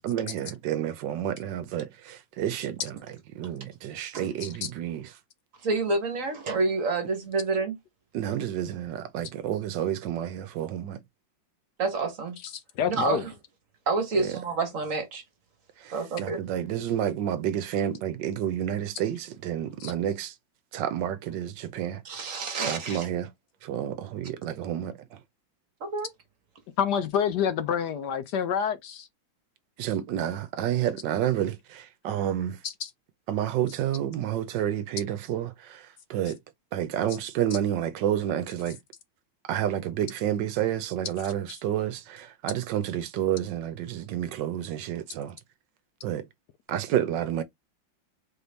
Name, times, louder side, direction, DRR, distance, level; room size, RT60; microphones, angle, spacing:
voice 1, 0.0-3.0 3.3-5.1 8.1-11.0 12.9-13.0 14.1-14.4 15.8-20.4 20.7-23.3 23.6-25.2 29.8-32.6 33.3-36.4 36.7-38.8 39.5-45.4 46.0-46.3 46.7-47.4, right 10 dB, 75° right, 1.2 m, -30 dB
voice 2, 5.6-7.8 11.8-12.4 12.9-13.3 13.9-15.2 15.9-16.4 22.0-23.1 25.8-26.1, right 3 dB, 50° right, 1.3 m, -28 dB
voice 3, 12.8-13.2 19.8-19.9 26.8-29.1 32.6-32.9, left 8 dB, 70° left, 1.1 m, -27 dB
4.4 x 2.6 x 3.4 m
omnidirectional pair, 2.1 m